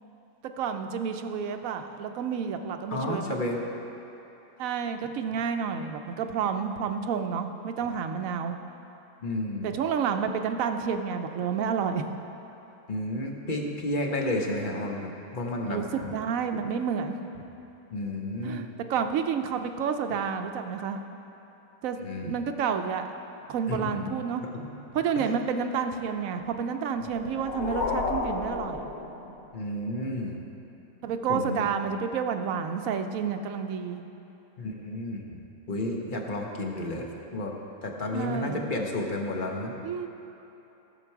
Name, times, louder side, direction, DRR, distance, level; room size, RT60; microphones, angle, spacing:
voice 1, 0.4-3.2 4.6-8.6 9.6-12.0 15.7-15.8 16.1-17.3 18.4-21.0 21.8-23.1 23.5-24.4 24.9-28.9 31.0-34.0 38.1-38.6 39.8-40.1, right 6 dB, 80° right, 7 dB, 1.1 m, -30 dB
voice 2, 2.9-3.6 9.2-9.7 12.9-16.1 17.9-18.7 22.0-22.3 23.7-24.1 24.4-24.7 25.2-25.4 29.5-30.4 31.3-31.7 34.6-35.4 35.7-37.1 37.3-37.5 37.8-39.7, left 1 dB, 40° left, 1 dB, 1.1 m, -31 dB
sound 1, 27.0-29.6, left 3 dB, 85° left, 1.4 m, -32 dB
15.0 x 6.8 x 4.6 m, 3.0 s
omnidirectional pair, 1.4 m